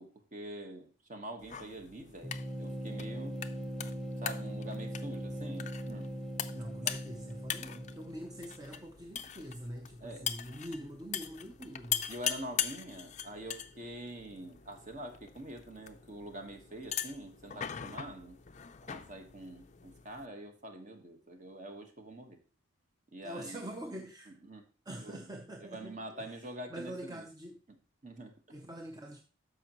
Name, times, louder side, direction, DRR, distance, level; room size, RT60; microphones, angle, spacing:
voice 1, 0.0-3.4 4.2-6.1 6.8-7.0 10.0-10.3 12.1-18.4 18.9-22.4 23.1-23.7 24.5-24.6 24.9-25.2 25.6-27.3 28.0-28.4, right 1 dB, 35° right, 1.4 m, -45 dB
sound 1, 1.4-20.3, left 9 dB, 35° left, 0.5 m, -41 dB
sound 2, 2.2-8.9, equal, ahead, 1.2 m, -40 dB
voice 2, 6.5-12.0 23.2-24.3 24.8-27.6 28.5-29.2, right 1 dB, 20° right, 0.7 m, -45 dB
13.0 x 5.2 x 3.0 m
head